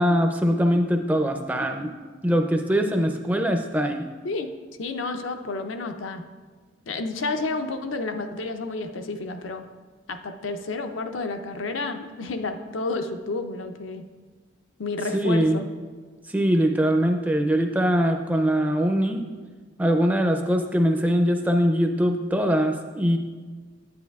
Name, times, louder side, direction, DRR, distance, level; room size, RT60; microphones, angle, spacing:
voice 1, 0.0-1.9 2.2-4.0 15.1-15.6 16.3-19.3 19.8-23.2, equal, 10° right, 5 dB, 0.4 m, -22 dB
voice 2, 4.8-6.2 6.9-9.6 10.1-14.0 14.8-15.6, left 3 dB, 85° left, 6 dB, 0.6 m, -30 dB
9.5 x 8.6 x 2.3 m, 1.4 s
head